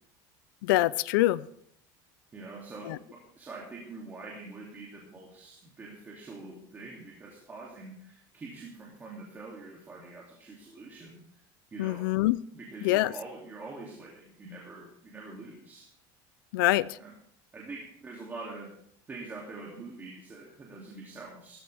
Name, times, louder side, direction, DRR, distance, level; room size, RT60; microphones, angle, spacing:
voice 1, 0.6-1.5 2.9-3.0 11.8-12.4 12.8-13.1 16.5-17.0, left 17 dB, 85° left, 18 dB, 0.5 m, -25 dB
voice 2, 2.3-11.4 11.7-12.1 12.5-15.9 17.0-17.1 17.5-18.7 19.1-21.6, right 3 dB, 15° right, -3 dB, 2.8 m, -45 dB
17.0 x 14.0 x 3.5 m, 0.66 s
cardioid pair, 160°, 11 cm